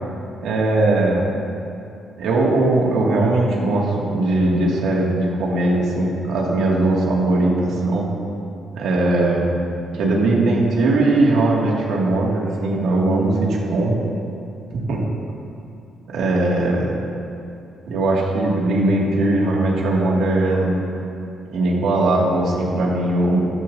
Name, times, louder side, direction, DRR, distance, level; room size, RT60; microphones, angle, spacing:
voice 1, 0.4-1.2 2.2-8.1 8.7-9.4 9.9-14.0 14.9-15.0 16.1-17.0 17.9-20.8 21.5-23.5, right 2 dB, 80° right, -3 dB, 2.6 m, -19 dB
15.0 x 12.5 x 2.9 m, 2.6 s
cardioid pair, 90°, 0 cm